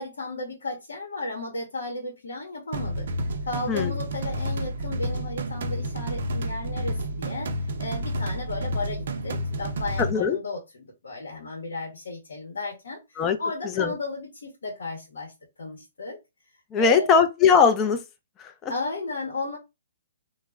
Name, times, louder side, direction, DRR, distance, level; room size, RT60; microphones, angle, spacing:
voice 1, 0.0-3.1 3.5-7.5 7.8-15.3 15.6-16.2 16.8-17.2 18.7-19.6, left 3 dB, 80° left, 0.8 m, -34 dB
sound 1, 2.7-10.1, equal, 65° right, 0.5 m, -30 dB
voice 2, 10.0-10.4 13.2-13.4 13.8-13.9 16.7-18.0 18.4-18.7, left 6 dB, 20° left, 0.4 m, -20 dB
2.1 x 2.0 x 3.4 m
hypercardioid pair, 140°, 0 cm